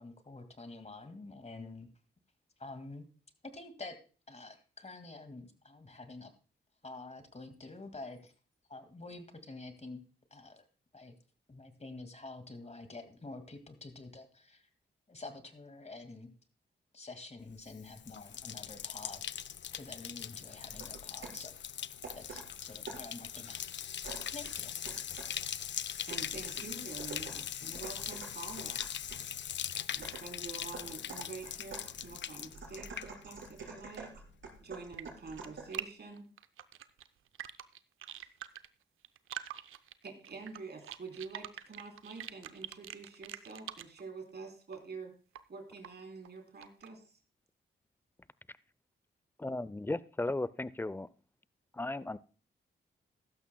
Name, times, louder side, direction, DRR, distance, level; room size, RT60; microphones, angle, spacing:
voice 1, 0.0-1.9 2.6-3.1 3.4-4.0 4.3-6.3 6.8-8.3 8.7-10.0 10.3-10.6 10.9-11.2 11.5-14.7 15.1-16.3 16.9-19.2 19.7-21.5 22.2-23.6 24.3-24.7, left 3 dB, 35° left, 8 dB, 2.1 m, -48 dB
Bathtub (filling or washing), 17.6-33.7 33.9-34.5, left 9 dB, 65° left, 0.5 m, -41 dB
sound 1, 20.7-21.5 22.0-23.2 24.0-25.4 26.1-29.3 30.0-35.8, right 4 dB, 70° right, 4.6 m, -48 dB
voice 2, 26.1-28.8 29.9-34.1 34.6-36.3 38.2-38.3 40.0-45.1 45.5-47.2, right 4 dB, 55° right, 3 dB, 3.7 m, -47 dB
sound 2, 34.7-35.8 36.2-38.7 39.0-44.0 44.7-44.8 45.4-45.5 45.8-45.9 46.2-46.9, right 11 dB, 90° right, 0.6 m, -44 dB
voice 3, 49.4-51.1 51.7-52.2, left 2 dB, 10° left, 19 dB, 0.5 m, -35 dB
15.0 x 12.5 x 2.2 m, 0.37 s
cardioid pair, 50°, 20 cm